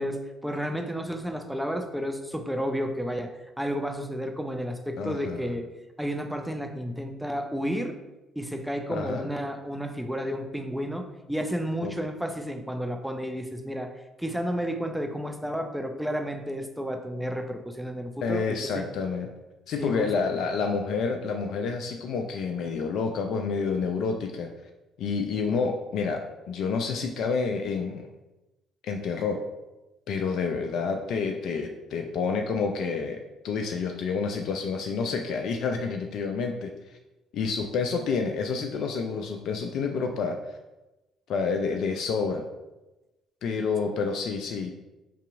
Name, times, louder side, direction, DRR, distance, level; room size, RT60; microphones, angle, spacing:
voice 1, 0.0-3.3 3.6-5.7 6.0-8.0 8.4-13.9 14.2-18.8 19.8-20.1, equal, 5° right, 5 dB, 0.5 m, -31 dB
voice 2, 5.0-5.5 8.9-9.3 11.8-11.9 18.2-19.3 19.7-24.5 25.0-28.1 28.8-29.4 30.1-36.7 37.3-40.4 41.3-42.4 43.4-44.7, left 5 dB, 65° left, 4 dB, 0.3 m, -29 dB
4.6 x 2.7 x 2.5 m, 1.0 s
hypercardioid pair, 50°, 0 cm